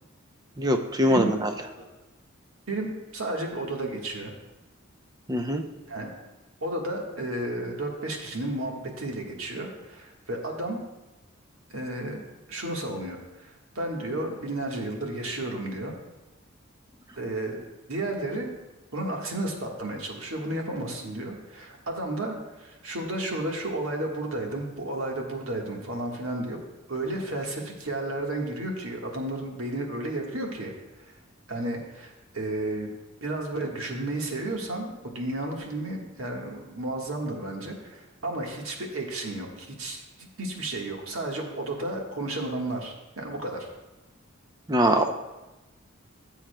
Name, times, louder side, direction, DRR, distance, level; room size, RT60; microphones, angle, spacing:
voice 1, 0.6-1.5 5.3-5.6 44.7-45.1, equal, 20° right, 5 dB, 0.5 m, -22 dB
voice 2, 2.7-4.3 5.9-6.1 6.6-10.8 11.7-12.2 12.5-16.0 17.2-18.5 18.9-26.6 26.9-31.2 31.5-32.9 33.2-43.7, right 1 dB, 80° right, 0 dB, 1.5 m, -32 dB
14.5 x 7.4 x 2.2 m, 1.1 s
head